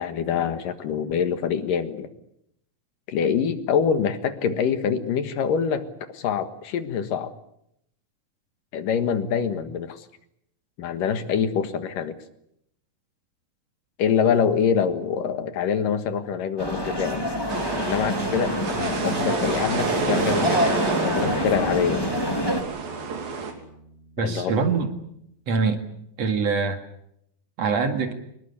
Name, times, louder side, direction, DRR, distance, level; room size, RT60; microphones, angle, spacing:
voice 1, 0.0-2.1 3.1-7.3 8.7-10.1 10.8-12.2 14.0-17.4 17.8-22.1 24.2-24.6, left 7 dB, 70° left, 9 dB, 3.1 m, -25 dB
sound 1, 16.6-22.6, left 1 dB, 10° left, 2.2 m, -26 dB
sound 2, 17.5-23.5, right 5 dB, 85° right, 4.9 m, -29 dB
Bass guitar, 21.2-24.7, left 1 dB, 30° left, 3.7 m, -39 dB
voice 2, 24.2-24.9 25.5-25.8 26.2-26.8 27.6-28.1, right 4 dB, 50° right, 6 dB, 2.8 m, -23 dB
24.5 x 21.0 x 8.3 m, 0.76 s
omnidirectional pair, 4.0 m